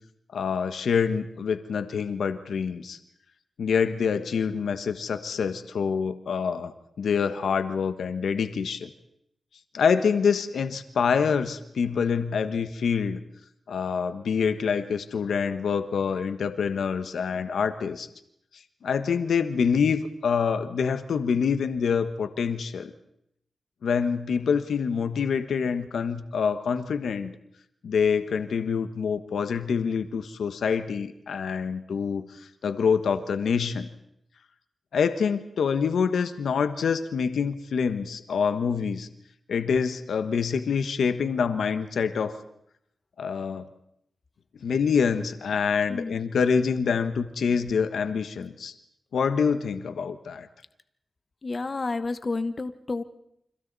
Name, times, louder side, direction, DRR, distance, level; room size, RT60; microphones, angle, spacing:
voice 1, 0.3-3.0 3.6-8.9 9.7-13.2 13.7-18.1 18.8-22.9 23.8-27.3 27.8-32.3 32.6-33.9 34.9-39.1 39.5-42.4 43.2-43.7 44.6-48.7 49.1-50.5, left 6 dB, 90° left, 9 dB, 1.2 m, -26 dB
voice 2, 51.4-53.0, left 3 dB, 40° left, 10 dB, 1.2 m, -30 dB
29.5 x 25.5 x 4.1 m, 0.77 s
cardioid pair, 70°, 0 cm